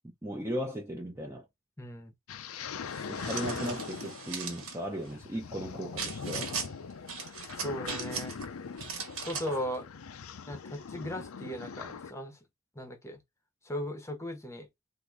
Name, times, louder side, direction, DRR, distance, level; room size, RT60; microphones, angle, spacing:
voice 1, 0.2-1.5 3.1-6.5, equal, 10° right, 0.7 m, -37 dB
voice 2, 1.8-2.1 7.6-8.4 9.2-9.9 10.5-12.4 12.7-13.2 13.6-14.7, equal, 15° left, 0.9 m, -37 dB
sound 1, 2.3-12.1, left 5 dB, 85° left, 0.5 m, -41 dB
sound 2, 2.9-4.8 6.0-6.7 7.1-8.5 8.8-9.6, right 5 dB, 85° right, 1.4 m, -38 dB
3.7 x 2.6 x 4.7 m
head